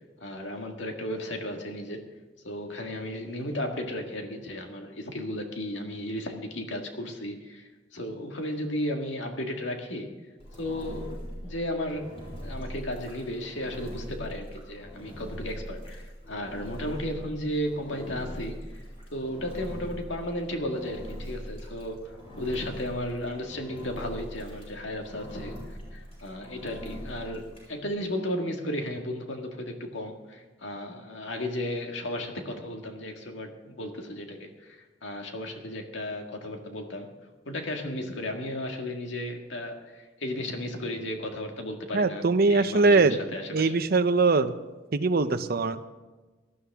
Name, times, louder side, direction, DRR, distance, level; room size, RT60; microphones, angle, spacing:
voice 1, 0.2-2.1 2.4-10.1 10.6-18.6 19.1-37.1 37.5-43.7, left 1 dB, 70° left, 3 dB, 1.9 m, -34 dB
Engine, 10.4-27.7, equal, 30° left, 5.7 m, -41 dB
voice 2, 41.9-43.2 43.5-44.5 44.9-45.9, right 3 dB, 55° right, 11 dB, 0.7 m, -22 dB
18.5 x 13.0 x 3.6 m, 1.3 s
head